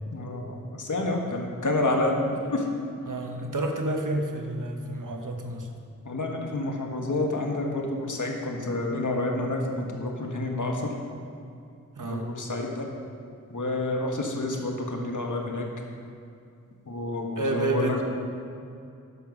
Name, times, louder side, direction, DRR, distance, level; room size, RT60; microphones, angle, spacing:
voice 1, 0.1-2.6 6.0-10.9 12.0-12.9 13.5-15.6 16.9-18.0, left 2 dB, 65° left, 1 dB, 1.5 m, -29 dB
voice 2, 3.1-5.7 12.0-12.3 17.4-18.0, right 1 dB, 70° right, 3 dB, 1.2 m, -29 dB
10.5 x 6.8 x 6.1 m, 2.5 s
wide cardioid pair, 50°, 33 cm